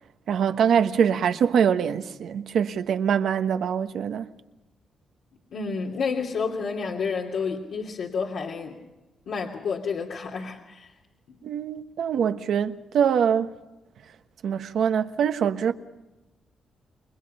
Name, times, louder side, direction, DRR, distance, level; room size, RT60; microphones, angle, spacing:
voice 1, 0.3-4.3 11.4-13.5 14.4-15.7, right 8 dB, 70° right, 1.2 m, -23 dB
voice 2, 5.5-8.8 9.3-10.9, left 5 dB, 70° left, 2.8 m, -30 dB
28.5 x 23.0 x 5.6 m
cardioid pair, 140°, 0 cm